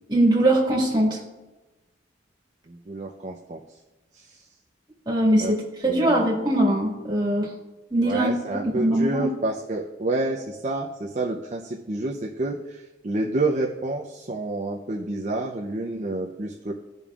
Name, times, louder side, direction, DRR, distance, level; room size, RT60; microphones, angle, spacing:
voice 1, 0.1-1.2 5.1-7.5 7.9-9.3, right 1 dB, 25° right, -3 dB, 1.7 m, -21 dB
voice 2, 2.7-3.6 5.4-5.5 5.9-6.3 8.1-16.7, right 2 dB, 40° right, -1 dB, 0.6 m, -29 dB
16.0 x 5.3 x 2.4 m, 1.1 s
head